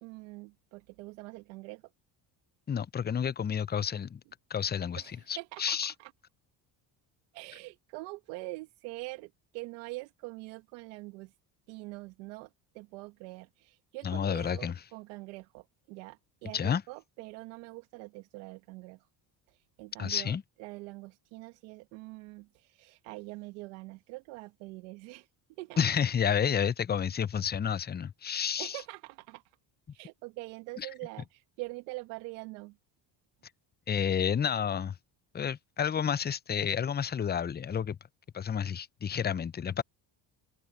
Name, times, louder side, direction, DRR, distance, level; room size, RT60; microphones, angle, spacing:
voice 1, 0.0-1.8 5.0-6.1 7.3-11.3 11.7-19.1 19.5-25.3 25.6-25.9 28.6-29.6 29.9-32.8, right 23 dB, 90° right, 1.4 m, -44 dB
voice 2, 2.7-4.2 4.5-5.0 5.3-5.9 14.0-14.7 16.5-16.8 20.0-20.4 25.8-28.7 33.9-34.9 35.3-38.0 38.3-39.8, left 8 dB, 20° left, 0.6 m, -30 dB
open air
supercardioid pair, 85°, 50 cm